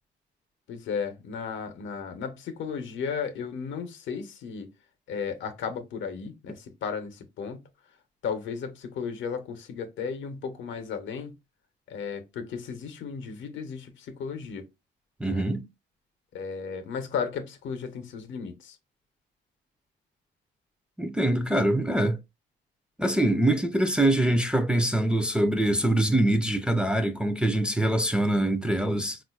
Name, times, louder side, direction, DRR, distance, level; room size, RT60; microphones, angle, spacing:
voice 1, 0.7-4.7 5.1-7.7 8.2-11.4 11.9-14.7 15.2-15.5 16.3-18.8, left 6 dB, 70° left, 0.7 m, -34 dB
voice 2, 15.2-15.7 21.0-22.2 23.0-29.2, right 1 dB, 5° right, 0.4 m, -24 dB
3.8 x 2.4 x 2.3 m
cardioid pair, 90°, 20 cm